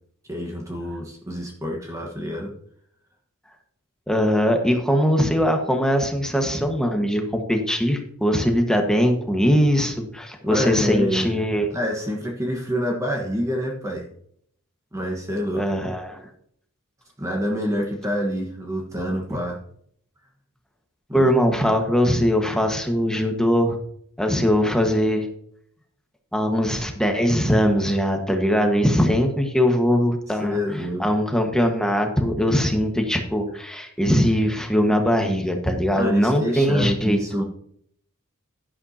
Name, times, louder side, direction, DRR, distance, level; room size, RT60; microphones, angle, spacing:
voice 1, 0.3-2.5 10.4-11.3 11.7-14.1 14.9-15.7 17.2-19.6 21.1-21.2 30.4-31.1 35.9-37.4, equal, 15° right, 0 dB, 1.4 m, -27 dB
voice 2, 4.1-11.7 15.5-16.2 19.3-19.4 21.1-23.8 24.2-25.3 26.3-30.6 31.0-37.2, equal, 5° left, 3 dB, 1.4 m, -21 dB
11.5 x 11.0 x 2.8 m, 0.67 s
head